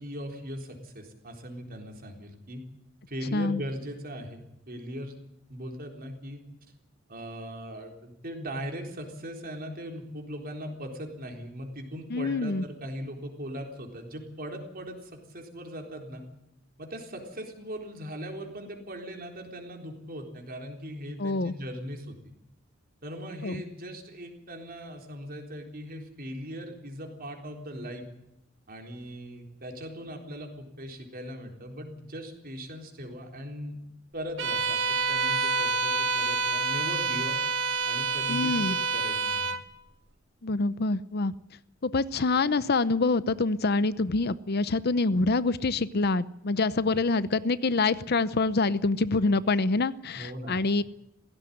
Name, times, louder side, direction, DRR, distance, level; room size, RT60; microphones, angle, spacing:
voice 1, 0.0-2.6 3.1-5.2 5.5-6.4 7.1-16.2 16.8-22.2 23.0-28.0 28.7-33.9 34.1-37.4 37.9-39.5 50.2-50.7, equal, 45° right, 3 dB, 3.8 m, -39 dB
voice 2, 12.1-12.7 21.2-21.5 23.4-23.6 38.3-38.8 40.4-41.3 41.8-50.8, left 3 dB, 50° left, 16 dB, 0.7 m, -26 dB
Bowed string instrument, 34.4-39.7, right 4 dB, 65° right, 1.4 m, -28 dB
17.0 x 16.5 x 10.0 m, 0.86 s
head